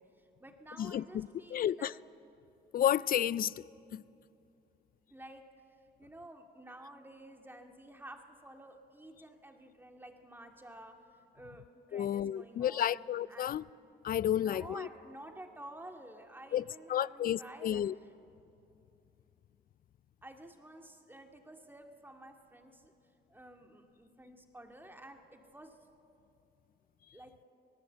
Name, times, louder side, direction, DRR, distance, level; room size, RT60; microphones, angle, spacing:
voice 1, 0.0-1.9 5.1-5.4 6.0-11.0 11.3-11.6 11.9-13.6 14.4-18.1 20.2-22.9 23.3-25.8 27.1-27.3, right 1 dB, 10° right, 2.2 m, -51 dB
voice 2, 0.8-1.9 2.7-3.5 3.9-4.0 11.9-13.6 14.0-14.9 16.5-16.6 16.9-17.9, left 10 dB, 45° left, 0.4 m, -31 dB
24.5 x 18.0 x 8.1 m
cardioid pair, 90°, 20 cm